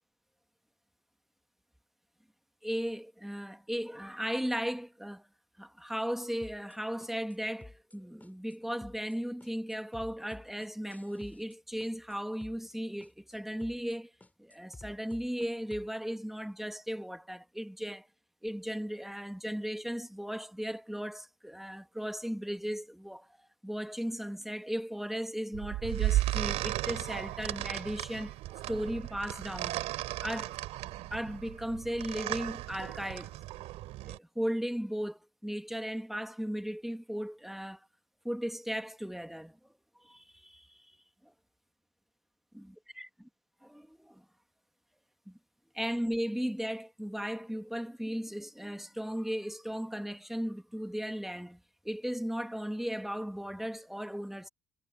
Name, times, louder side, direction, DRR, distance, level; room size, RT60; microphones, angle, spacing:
voice 1, 2.6-5.3 5.6-14.1 14.4-18.1 18.4-23.3 23.6-28.4 28.7-29.8 30.2-30.6 31.1-33.4 34.0-37.9 38.2-39.6 40.0-41.0 41.2-41.3 42.5-42.7 43.0-43.1 43.6-44.2 45.3-45.4 45.7-51.6 51.8-54.5, equal, ahead, 1.9 m, -36 dB
sound 1, 6.4-6.8 7.0-7.4 7.6-8.0 8.2-8.6 8.8-9.2 9.4-11.6 11.8-12.2 12.4-12.8 13.0-13.4 13.6-14.0 14.2-15.9, left 2 dB, 15° left, 7.4 m, -52 dB
sound 2, 25.5-34.2, right 16 dB, 80° right, 3.2 m, -35 dB
supercardioid pair, 75°, 11 cm